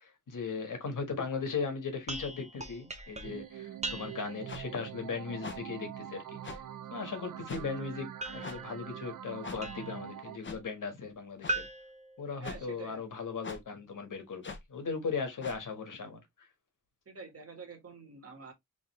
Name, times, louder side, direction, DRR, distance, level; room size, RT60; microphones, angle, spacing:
voice 1, 0.0-6.2 6.9-11.7 12.2-16.5, left 5 dB, 85° left, 1.5 m, -38 dB
sound 1, 2.1-4.5 8.2-10.1 11.5-12.9, right 1 dB, 20° right, 0.7 m, -40 dB
sound 2, 3.2-10.4, right 10 dB, 90° right, 0.5 m, -44 dB
sound 3, 4.5-4.6 5.4-5.6 6.4-6.6 7.5-7.7 8.4-8.6 9.4-9.6 10.4-10.6 11.4-11.6 12.4-12.6 13.4-13.6 14.4-14.6 15.4-15.6, left 4 dB, 40° left, 0.7 m, -42 dB
voice 2, 12.4-13.0 17.1-18.5, right 5 dB, 50° right, 1.5 m, -47 dB
3.8 x 3.5 x 3.1 m
wide cardioid pair, 150°, 31 cm